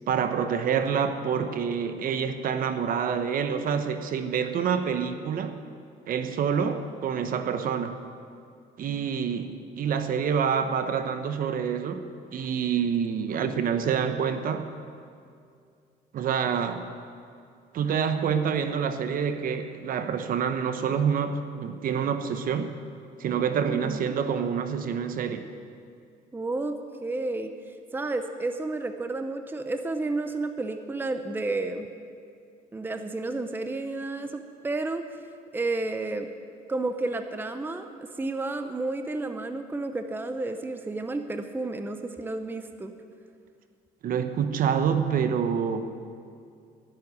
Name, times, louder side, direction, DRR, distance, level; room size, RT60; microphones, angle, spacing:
voice 1, 0.1-5.6 6.1-8.0 8.8-12.0 12.3-14.7 16.1-16.9 17.7-22.7 23.2-25.5 44.0-46.0, right 7 dB, 55° right, 8 dB, 0.9 m, -27 dB
voice 2, 23.7-24.1 26.3-26.8 27.0-27.5 27.9-31.9 32.7-35.0 35.5-36.3 36.7-42.9, right 2 dB, 10° right, 7 dB, 0.7 m, -31 dB
10.5 x 7.7 x 9.8 m, 2.4 s
cardioid pair, 110°, 17 cm